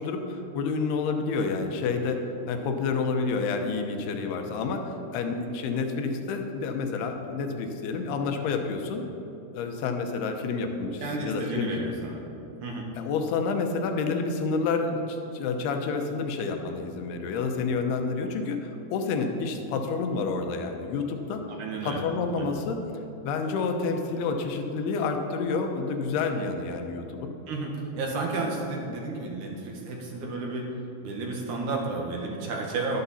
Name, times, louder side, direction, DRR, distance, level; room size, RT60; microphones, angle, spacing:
voice 1, 0.0-9.0 9.5-11.7 13.0-21.4 21.8-22.8 23.2-27.3 28.4-28.6, left 4 dB, 80° left, 5 dB, 2.8 m, -29 dB
voice 2, 11.0-12.2 12.6-12.9 21.6-22.0 22.4-22.6 27.5-30.7 31.0-33.0, right 3 dB, 60° right, 0 dB, 2.3 m, -32 dB
12.5 x 12.0 x 4.2 m, 2.9 s
omnidirectional pair, 4.7 m